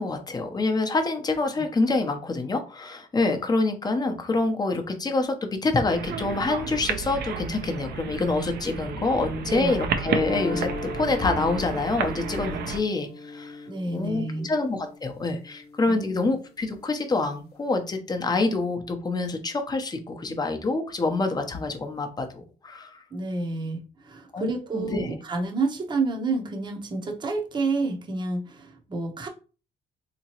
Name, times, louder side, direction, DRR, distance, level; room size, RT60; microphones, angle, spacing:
voice 1, 0.0-23.0 24.3-25.1, left 3 dB, 25° left, 5 dB, 0.8 m, -26 dB
sound 1, 5.9-12.8, right 6 dB, 70° right, 0.6 m, -32 dB
sound 2, 10.1-16.2, left 2 dB, 65° left, 0.8 m, -37 dB
voice 2, 13.7-14.5 15.9-16.0 23.1-29.3, right 3 dB, 25° right, 2 dB, 0.8 m, -29 dB
3.6 x 2.9 x 2.9 m, 0.35 s
cardioid pair, 100°, 17 cm